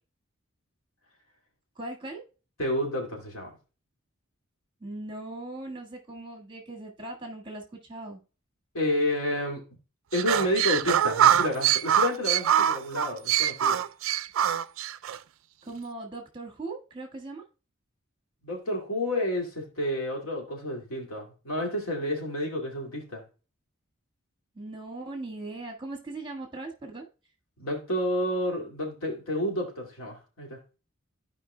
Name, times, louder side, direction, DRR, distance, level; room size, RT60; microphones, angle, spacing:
voice 1, 1.8-2.2 4.8-8.2 15.7-17.4 24.5-27.1, right 2 dB, 25° right, 1.5 m, -39 dB
voice 2, 2.6-3.5 8.7-9.6 10.1-13.8 18.4-23.2 27.6-30.6, left 1 dB, 85° left, 2.3 m, -30 dB
sound 1, 10.1-15.2, right 10 dB, 75° right, 0.3 m, -24 dB
14.5 x 5.0 x 2.2 m
head